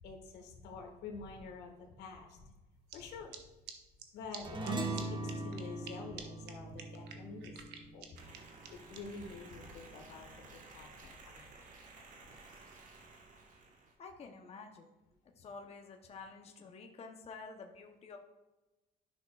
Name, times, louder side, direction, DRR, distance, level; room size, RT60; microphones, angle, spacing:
voice 1, 0.0-2.5 2.9-3.3 4.1-8.2 8.7-11.7, left 4 dB, 85° left, 3 dB, 1.4 m, -48 dB
sound 1, 2.9-3.0 3.3-3.4 3.7-3.8 4.0-4.1 4.3-4.4 4.6-4.7 5.0-5.1 5.3-5.9 6.2-6.3 6.5-6.6 6.8-9.0, right 8 dB, 80° right, 1.0 m, -47 dB
sound 2, 4.4-9.1, right 2 dB, 25° right, 1.2 m, -41 dB
sound 3, 8.2-13.9, right 3 dB, 50° right, 1.3 m, -55 dB
voice 2, 14.0-14.9 15.4-18.2, left 4 dB, 35° left, 3 dB, 0.8 m, -50 dB
11.0 x 6.0 x 2.3 m, 1.1 s
cardioid pair, 110°, 17 cm